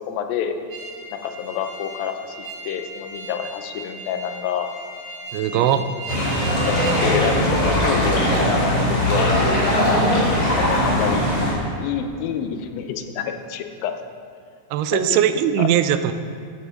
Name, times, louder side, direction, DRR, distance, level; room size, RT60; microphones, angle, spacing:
voice 1, 0.1-0.5 1.1-2.4 2.6-4.7 5.5-5.8 6.6-8.2 8.6-10.1 10.4-11.2 11.8-13.9 14.9-15.2 15.6-15.7, left 8 dB, 75° left, 6 dB, 2.3 m, -28 dB
sound 1, 0.7-7.3, right 2 dB, 45° right, 3.9 m, -37 dB
voice 2, 5.3-5.8 14.7-16.1, right 10 dB, 85° right, 11 dB, 2.6 m, -19 dB
sound 2, 6.1-11.5, left 1 dB, 30° left, 2.6 m, -20 dB
14.0 x 7.1 x 5.1 m, 2.3 s
omnidirectional pair, 4.6 m